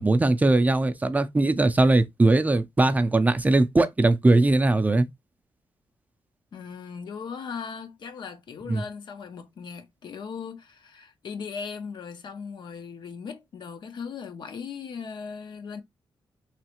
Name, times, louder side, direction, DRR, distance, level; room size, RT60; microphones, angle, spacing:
voice 1, 0.0-5.1 8.7-8.8, right 2 dB, 15° right, 0.4 m, -20 dB
voice 2, 6.5-15.8, left 6 dB, 55° left, 0.5 m, -38 dB
3.1 x 2.4 x 2.9 m
wide cardioid pair, 120°, 9 cm